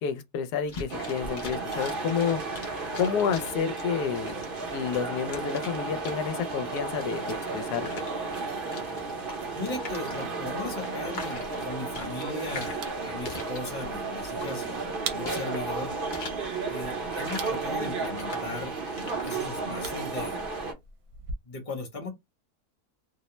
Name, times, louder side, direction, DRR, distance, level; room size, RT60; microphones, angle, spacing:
voice 1, 0.0-2.4 3.0-4.3 4.7-8.0, left 7 dB, 85° left, 1.1 m, -30 dB
sound 1, 0.6-19.4, left 3 dB, 65° left, 0.4 m, -45 dB
sound 2, 0.9-20.7, right 3 dB, 45° right, 0.8 m, -33 dB
voice 2, 9.5-14.8 15.1-15.9 16.7-18.7 19.2-20.4 21.4-22.1, left 2 dB, 25° left, 0.9 m, -37 dB
sound 3, 11.3-21.3, right 5 dB, 75° right, 1.1 m, -44 dB
2.8 x 2.1 x 2.9 m
omnidirectional pair, 1.7 m